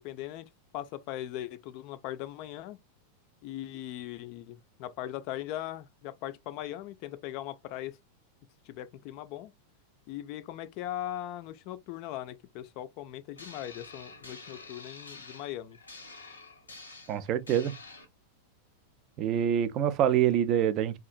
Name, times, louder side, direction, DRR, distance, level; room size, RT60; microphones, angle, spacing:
voice 1, 0.0-2.8 3.4-8.0 8.7-9.5 10.1-15.8, left 13 dB, 45° left, 0.3 m, -39 dB
sound 1, 13.4-18.0, left 3 dB, 80° left, 0.7 m, -48 dB
voice 2, 17.1-17.7 19.2-21.0, right 10 dB, 35° right, 0.3 m, -26 dB
2.8 x 2.3 x 2.4 m
figure-of-eight pair, 90°, 0 cm